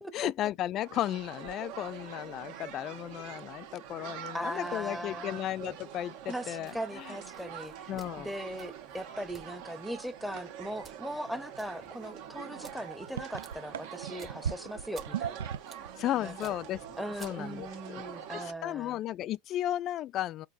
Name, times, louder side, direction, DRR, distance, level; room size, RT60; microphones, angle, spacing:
voice 1, 0.1-7.1 7.9-8.3 16.0-18.0 18.3-20.5, left 13 dB, 45° left, 0.3 m, -35 dB
sound 1, 0.7-18.5, right 9 dB, 65° right, 1.3 m, -45 dB
voice 2, 4.3-5.5 6.3-15.4 16.2-16.5 17.0-19.0, equal, ahead, 0.8 m, -39 dB
sound 2, 6.6-17.8, right 4 dB, 25° right, 1.0 m, -57 dB
sound 3, 12.7-12.8 13.0-15.9 16.2-17.2 17.5-17.8, right 8 dB, 90° right, 0.5 m, -38 dB
4.4 x 2.6 x 2.6 m
hypercardioid pair, 105°, 0 cm